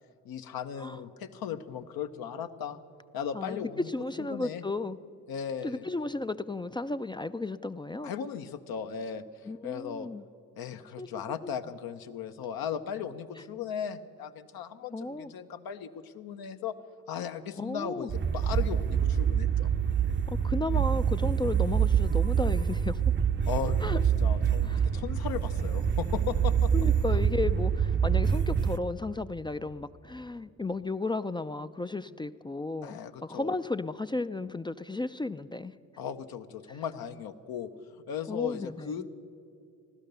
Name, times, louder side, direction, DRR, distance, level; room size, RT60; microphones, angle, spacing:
voice 1, 0.2-2.8 3.1-3.9 4.2-4.6 5.3-5.9 8.0-9.2 9.6-10.1 10.6-16.8 17.1-19.7 23.5-23.9 24.2-26.7 27.1-27.2 32.8-33.5 36.0-37.7 38.1-39.2, left 8 dB, 70° left, 8 dB, 0.9 m, -37 dB
voice 2, 3.3-5.0 5.6-8.1 9.5-10.2 11.0-11.1 11.4-11.6 14.9-15.3 17.6-18.1 20.3-23.0 23.8-24.0 24.6-24.9 26.7-35.7 36.7-36.8 38.3-39.0, left 2 dB, 15° left, 11 dB, 0.4 m, -34 dB
sound 1, 18.1-28.8, right 8 dB, 30° right, 0.6 m, -26 dB
16.0 x 12.0 x 6.7 m, 2.5 s
supercardioid pair, 55°, 37 cm